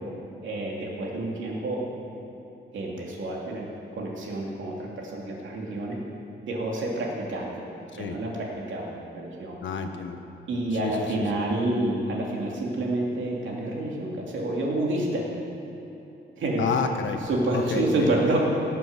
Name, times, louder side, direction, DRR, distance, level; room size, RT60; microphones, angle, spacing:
voice 1, 0.4-1.8 2.7-3.7 4.0-6.0 6.4-7.5 8.0-9.6 10.5-15.2 16.4-16.6 17.3-18.4, right 2 dB, 80° right, -2 dB, 3.0 m, -28 dB
voice 2, 9.6-10.2 10.7-11.4 16.6-17.2 17.5-18.1, left 5 dB, 75° left, 5 dB, 1.3 m, -30 dB
18.5 x 7.7 x 7.5 m, 2.9 s
wide cardioid pair, 165°, 19 cm